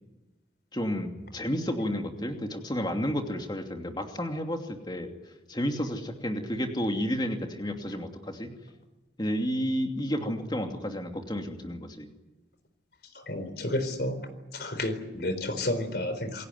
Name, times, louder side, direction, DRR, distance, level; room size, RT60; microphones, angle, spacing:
voice 1, 0.7-5.1 5.5-8.5 9.2-12.1, equal, 25° left, 4 dB, 2.7 m, -31 dB
voice 2, 13.1-14.2 14.5-16.5, left 1 dB, 60° left, 10 dB, 4.1 m, -31 dB
28.0 x 18.5 x 9.5 m, 1.1 s
head